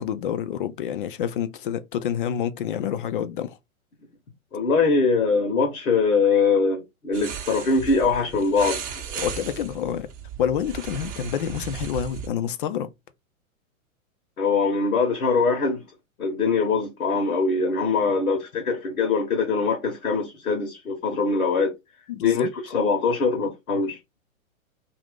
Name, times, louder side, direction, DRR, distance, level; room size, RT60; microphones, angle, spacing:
voice 1, 0.0-3.6 9.2-10.1 10.4-12.9 22.1-22.5, left 9 dB, 40° left, 0.4 m, -28 dB
voice 2, 4.5-8.8 9.1-9.3 14.4-15.8 16.2-21.7 22.2-24.0, left 4 dB, 75° left, 1.0 m, -22 dB
sound 1, 7.1-12.3, right 8 dB, 30° right, 0.7 m, -36 dB
2.8 x 2.6 x 3.3 m
figure-of-eight pair, 110°, 42 cm